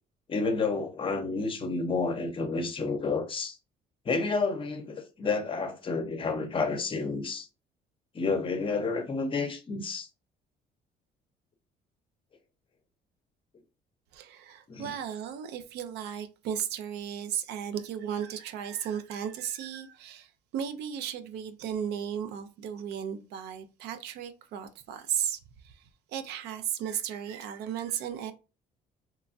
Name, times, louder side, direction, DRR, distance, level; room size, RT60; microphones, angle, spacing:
voice 1, 0.3-3.6 4.1-7.5 8.1-10.1 14.7-14.9, left 4 dB, 30° left, 0.6 m, -30 dB
voice 2, 14.1-25.4 25.6-25.7 26.1-28.3, right 9 dB, 85° right, 0.4 m, -35 dB
3.0 x 2.3 x 2.5 m
cardioid pair, 110°, 17 cm